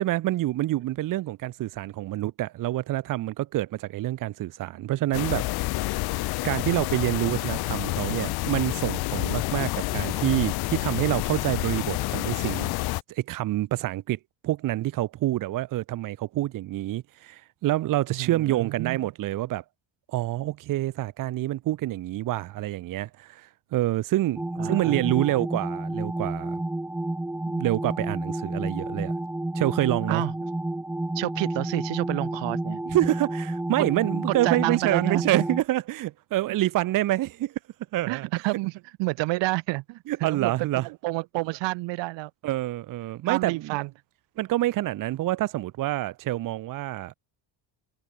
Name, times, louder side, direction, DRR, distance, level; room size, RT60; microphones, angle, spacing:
voice 1, 0.0-5.5 6.4-12.7 13.1-19.6 20.1-26.6 27.5-29.1 29.5-30.2 32.9-37.6 37.9-38.3 40.1-40.9 42.4-43.8 44.4-47.1, right 15 dB, 45° right, 1.3 m, -27 dB
sound 1, 5.1-13.0, left 20 dB, 55° left, 0.8 m, -28 dB
voice 2, 18.2-19.0 24.6-25.3 30.1-30.3 31.1-32.8 34.4-35.4 38.1-42.3 43.2-43.9, right 22 dB, 65° right, 1.4 m, -29 dB
sound 2, 24.4-35.6, right 1 dB, 5° right, 0.9 m, -30 dB
cardioid pair, 175°, 46 cm